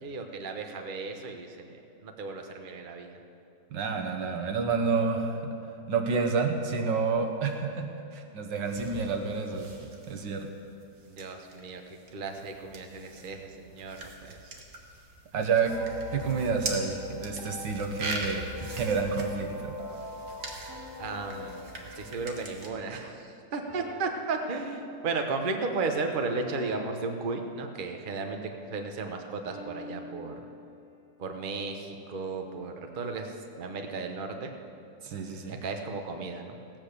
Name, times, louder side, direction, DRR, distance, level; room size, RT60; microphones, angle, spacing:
voice 1, 0.0-3.2 11.1-11.8 12.1-14.5 21.0-30.4 31.2-34.5 35.5-36.6, right 3 dB, 35° right, 4 dB, 1.0 m, -35 dB
voice 2, 3.7-5.6 5.9-9.7 10.1-10.5 15.3-15.7 16.1-18.5 18.7-19.7 35.0-35.6, right 5 dB, 85° right, 4 dB, 1.8 m, -29 dB
sound 1, 8.6-22.7, right 2 dB, 55° right, 1.9 m, -42 dB
sound 2, 15.7-22.0, left 3 dB, 45° left, 2.6 m, -42 dB
sound 3, 20.7-22.5 23.7-25.3 26.4-28.1 29.5-31.1, left 2 dB, 10° right, 2.6 m, -49 dB
16.0 x 9.0 x 6.7 m, 2.6 s
omnidirectional pair, 1.9 m